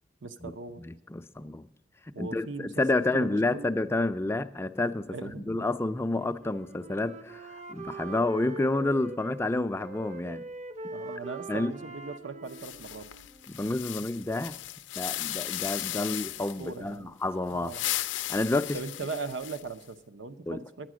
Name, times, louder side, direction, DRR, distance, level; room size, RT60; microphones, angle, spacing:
voice 1, 0.2-0.9 2.1-2.8 3.1-3.7 5.1-5.7 10.9-13.1 15.9-16.1 16.6-17.1 17.5-17.9 18.7-20.9, right 4 dB, 80° right, 0.7 m, -39 dB
voice 2, 0.8-1.7 2.2-10.5 11.5-11.7 13.5-14.6 15.0-17.8 18.3-18.8 20.5-20.6, left 2 dB, 15° left, 0.4 m, -29 dB
Wind instrument woodwind instrument, 5.9-9.4 9.8-13.8, right 2 dB, 40° right, 0.6 m, -43 dB
sound 1, 12.5-16.7 17.5-19.8, left 14 dB, 85° left, 0.4 m, -36 dB
10.5 x 9.0 x 6.1 m
head